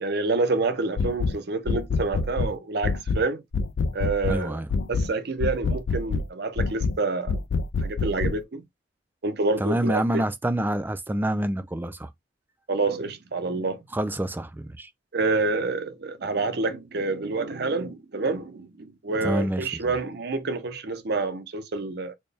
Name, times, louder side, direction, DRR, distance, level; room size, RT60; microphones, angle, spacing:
voice 1, 0.0-3.4 3.9-4.6 4.9-7.4 7.8-8.6 9.2-10.0 12.7-13.8 15.1-22.1, right 3 dB, 60° right, 0.7 m, -28 dB
sound 1, 1.0-1.4 1.7-2.5 2.8-3.2 3.5-4.4 4.7-5.1 5.4-6.3 6.6-7.0 7.3-8.4, left 4 dB, 75° left, 0.4 m, -26 dB
voice 2, 4.3-4.7 9.6-12.1 13.9-14.9 19.2-19.9, right 1 dB, 10° right, 0.4 m, -27 dB
4.3 x 2.2 x 3.3 m
head